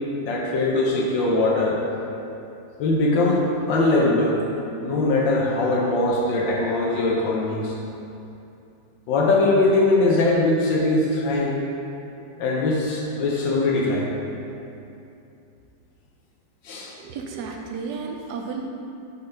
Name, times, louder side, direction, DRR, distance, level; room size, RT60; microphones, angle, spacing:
voice 1, 0.2-1.8 2.8-4.4 4.8-7.8 9.1-11.5 12.4-14.1 16.6-16.9, left 2 dB, 80° left, -3 dB, 1.4 m, -21 dB
voice 2, 17.0-18.7, right 5 dB, 70° right, 2 dB, 1.0 m, -32 dB
5.2 x 4.1 x 5.6 m, 2.7 s
omnidirectional pair, 2.0 m